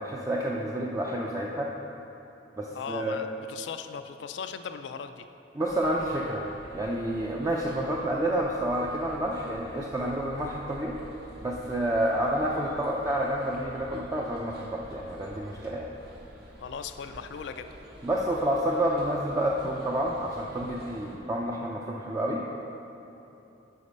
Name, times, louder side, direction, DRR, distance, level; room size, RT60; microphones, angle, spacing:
voice 1, 0.0-1.7 2.6-3.2 5.5-6.5 6.7-11.0 11.4-15.9 18.0-22.5, right 1 dB, 20° right, -3 dB, 0.4 m, -29 dB
voice 2, 2.7-5.3 16.6-17.7 20.6-20.7, left 6 dB, 70° left, 9 dB, 0.3 m, -38 dB
sound 1, 5.7-21.2, equal, 60° right, 1.2 m, -48 dB
8.4 x 5.1 x 5.3 m, 2.9 s
head